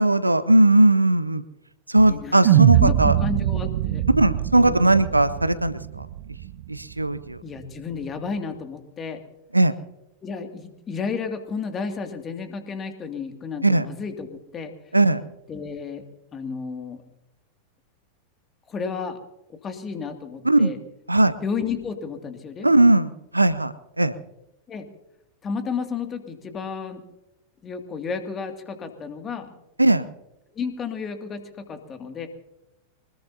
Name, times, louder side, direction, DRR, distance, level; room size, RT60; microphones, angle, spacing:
voice 1, 0.0-1.4 1.9-3.1 4.2-6.1 6.7-7.4 9.5-9.7 13.6-13.9 14.9-15.2 20.4-20.7 21.1-21.3 22.6-24.1 29.8-30.1, right 2 dB, 85° right, 15 dB, 0.7 m, -18 dB
voice 2, 2.1-4.0 4.6-4.7 7.4-9.2 10.2-14.7 15.5-16.0 16.3-17.0 18.7-19.2 19.6-20.8 21.4-22.7 24.7-24.9 25.4-27.0 27.6-29.5 30.5-32.3, left 5 dB, 25° left, 6 dB, 2.3 m, -32 dB
sound 1, 2.4-6.8, right 12 dB, 55° right, 0.7 m, -22 dB
24.5 x 20.5 x 2.8 m, 0.90 s
figure-of-eight pair, 90°, 0 cm